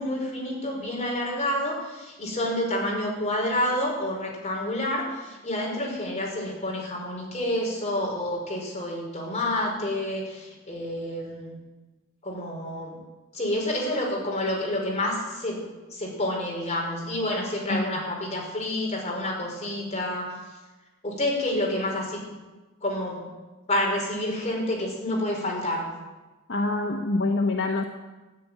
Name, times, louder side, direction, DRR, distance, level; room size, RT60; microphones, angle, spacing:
voice 1, 0.0-11.6 12.2-13.0 13.3-15.6 15.9-20.3 21.0-22.2 22.8-23.3 23.7-25.9, left 1 dB, 35° left, -2 dB, 4.9 m, -29 dB
voice 2, 26.5-27.8, left 2 dB, 60° left, 3 dB, 1.0 m, -25 dB
13.5 x 9.6 x 9.1 m, 1.2 s
head